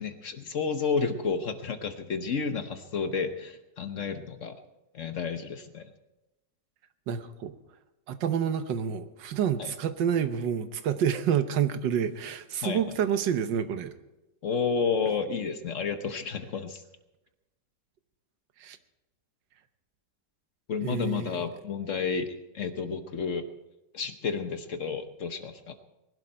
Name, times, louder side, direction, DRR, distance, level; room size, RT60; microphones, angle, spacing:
voice 1, 0.0-4.5 4.9-5.8 9.6-9.7 12.6-12.9 14.4-16.8 20.7-23.4 23.9-25.7, left 5 dB, 50° left, 8 dB, 1.1 m, -31 dB
voice 2, 7.1-7.6 8.1-13.9 18.6-18.8 20.8-21.3, right 8 dB, 85° right, 10 dB, 1.6 m, -28 dB
20.5 x 12.0 x 4.5 m, 0.99 s
omnidirectional pair, 1.9 m